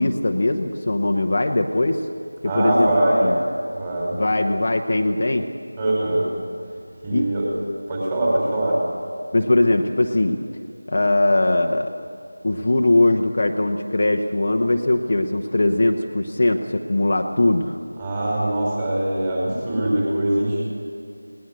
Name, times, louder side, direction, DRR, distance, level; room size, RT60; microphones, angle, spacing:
voice 1, 0.0-2.1 2.4-2.9 3.2-3.4 4.1-5.5 7.1-7.3 9.3-10.4 10.9-12.1 12.4-17.8, left 2 dB, 40° left, 3 dB, 1.0 m, -20 dB
voice 2, 2.4-3.3 3.7-4.2 5.8-6.3 7.0-7.5 7.9-8.8 18.0-20.6, right 1 dB, 15° right, -4 dB, 5.5 m, -22 dB
20.0 x 19.5 x 8.0 m, 2.6 s
figure-of-eight pair, 170°, 0 cm